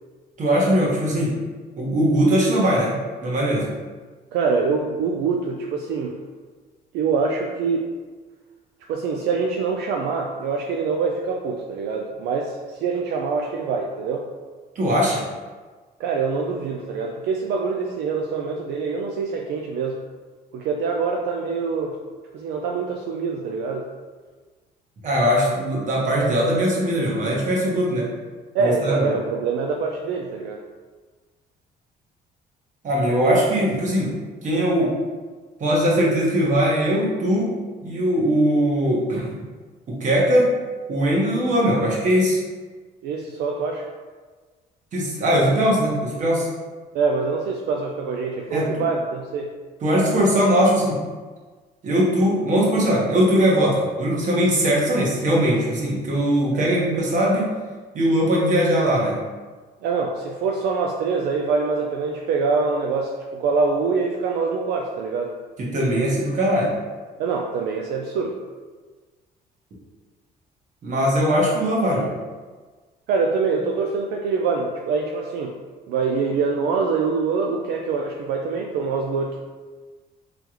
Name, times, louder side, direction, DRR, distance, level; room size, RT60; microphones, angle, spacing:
voice 1, 0.4-1.3 1.8-2.9 3.2-3.7 14.7-15.2 25.0-28.1 28.6-29.0 32.8-34.1 34.4-34.9 35.6-37.5 37.8-39.4 39.9-40.5 40.9-42.4 44.9-46.5 48.5-48.8 49.8-51.0 51.8-57.5 57.9-59.2 65.6-66.7 70.8-72.1, equal, 45° right, -4 dB, 1.3 m, -20 dB
voice 2, 4.3-6.2 6.9-7.9 8.9-14.3 16.0-20.0 20.5-22.0 22.3-23.9 28.5-30.6 33.2-33.4 43.0-43.9 46.9-49.5 56.5-56.7 59.8-65.3 67.2-68.4 73.1-75.6 75.9-79.4, right 4 dB, 80° right, 1 dB, 0.4 m, -24 dB
3.7 x 3.3 x 3.0 m, 1.4 s
cardioid pair, 110°, 17 cm